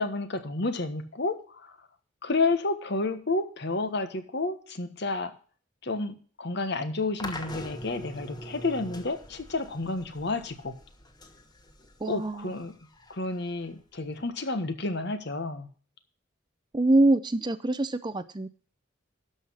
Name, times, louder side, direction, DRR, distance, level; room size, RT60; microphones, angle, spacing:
voice 1, 0.0-1.7 2.2-5.3 5.8-10.8 12.0-12.8 13.1-15.7, left 3 dB, 55° left, 9 dB, 1.3 m, -30 dB
sound 1, 7.2-14.3, left 1 dB, 20° left, 1.3 m, -44 dB
voice 2, 12.0-12.5 16.7-18.5, right 2 dB, 20° right, 13 dB, 0.6 m, -24 dB
12.0 x 5.8 x 6.3 m, 0.42 s
head